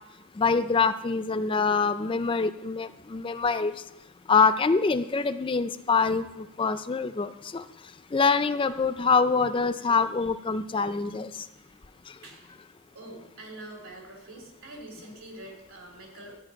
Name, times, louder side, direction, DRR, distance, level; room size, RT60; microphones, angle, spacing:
voice 1, 0.4-3.7 4.3-7.6 8.1-11.3, left 4 dB, 25° left, 11 dB, 0.3 m, -25 dB
voice 2, 11.6-12.6 12.9-16.4, right 1 dB, 70° right, 2 dB, 3.0 m, -45 dB
13.0 x 5.2 x 8.9 m, 0.93 s
head